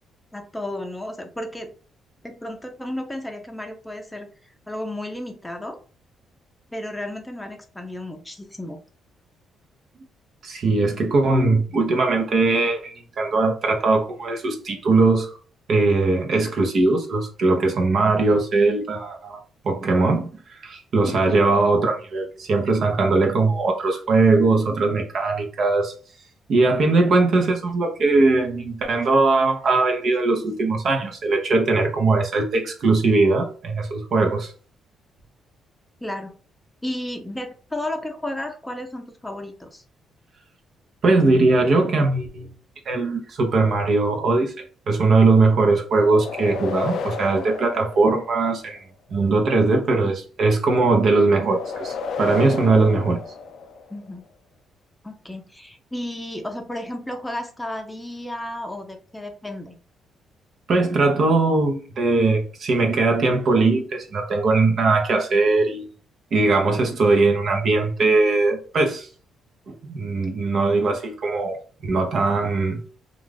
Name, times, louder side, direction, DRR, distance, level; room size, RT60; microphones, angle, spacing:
voice 1, 0.3-1.7 2.2-5.8 6.7-8.8 20.9-21.2 36.0-36.3 36.8-39.8 53.9-54.2 55.0-59.8, left 1 dB, 10° left, 0.6 m, -33 dB
voice 2, 10.4-15.4 15.7-25.9 26.5-34.5 41.0-42.5 42.9-48.8 49.1-53.2 60.7-65.9 66.3-69.1 69.7-72.8, right 3 dB, 60° right, 0.8 m, -20 dB
sound 1, 46.0-48.8 51.4-54.1, left 5 dB, 70° left, 0.3 m, -32 dB
2.4 x 2.4 x 3.3 m
cardioid pair, 90°, 0 cm